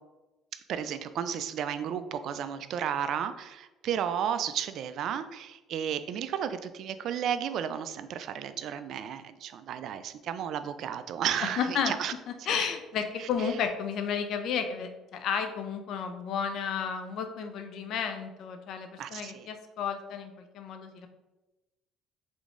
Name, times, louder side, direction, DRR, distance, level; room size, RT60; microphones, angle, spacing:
voice 1, 0.5-12.1 19.0-19.5, right 9 dB, 60° right, 11 dB, 0.3 m, -33 dB
voice 2, 11.4-12.0 12.3-21.1, left 7 dB, 65° left, 7 dB, 0.6 m, -32 dB
3.7 x 3.5 x 3.7 m, 1.1 s
cardioid pair, 110°, 0 cm